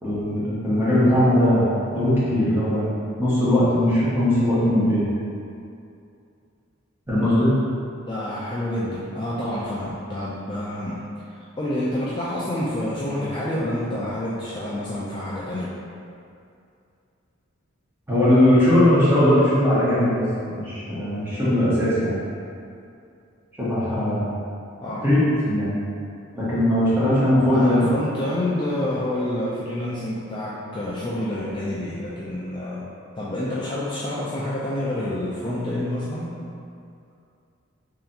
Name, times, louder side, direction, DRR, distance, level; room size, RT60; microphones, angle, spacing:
voice 1, 0.0-2.8 3.2-5.0 7.1-7.5 18.1-20.2 20.5-22.2 23.5-24.2 25.0-25.7 26.3-27.8, left 1 dB, 10° right, -12 dB, 1.2 m, -19 dB
voice 2, 8.1-11.0 11.3-15.7 24.8-25.1 27.5-32.9 33.2-36.4, left 1 dB, 20° left, -8 dB, 0.3 m, -28 dB
3.3 x 2.8 x 3.9 m, 2.5 s
head